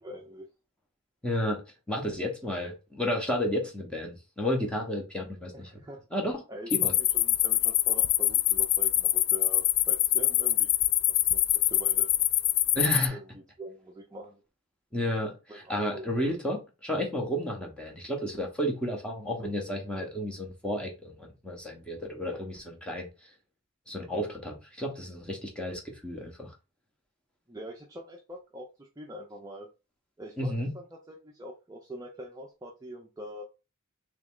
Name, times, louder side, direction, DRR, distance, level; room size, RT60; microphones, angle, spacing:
voice 1, 0.0-0.5 5.5-6.0 6.5-10.7 11.3-12.1 13.1-14.4 15.5-16.1 27.5-29.7 30.2-33.4, right 1 dB, 15° right, 0.5 m, -44 dB
voice 2, 1.2-5.7 6.1-6.4 6.7-6.9 12.7-13.2 14.9-23.1 23.9-26.5 30.4-30.7, equal, 5° left, 0.9 m, -32 dB
sound 1, 6.7-13.1, left 14 dB, 65° left, 0.3 m, -24 dB
3.5 x 3.1 x 3.6 m
head